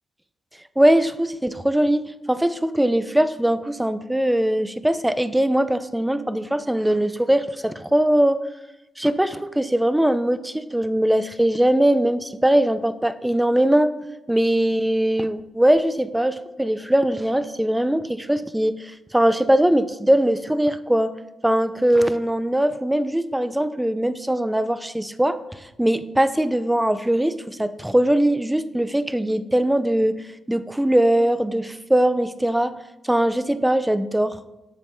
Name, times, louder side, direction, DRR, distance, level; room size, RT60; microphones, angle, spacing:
voice 1, 0.8-2.0 2.3-8.4 9.0-13.9 14.3-21.1 21.4-25.4 25.8-32.7 33.0-34.4, right 1 dB, 10° right, 12 dB, 0.5 m, -21 dB
7.3 x 6.9 x 2.7 m, 0.96 s
supercardioid pair, 50°, 0 cm